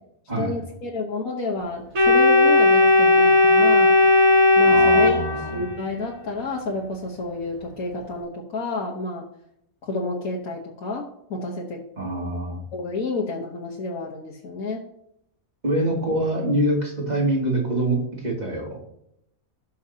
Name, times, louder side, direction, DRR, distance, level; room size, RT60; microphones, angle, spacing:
voice 1, 0.4-4.0 4.6-5.1 5.5-9.2 9.8-11.8 12.7-14.8, left 3 dB, 90° left, -2 dB, 1.7 m, -30 dB
Organ, 1.9-5.9, left 2 dB, 75° right, 1.9 m, -16 dB
voice 2, 4.6-5.7 12.0-12.6 15.6-18.8, right 1 dB, 30° right, -2 dB, 2.8 m, -25 dB
17.0 x 6.6 x 2.8 m, 0.74 s
omnidirectional pair, 1.4 m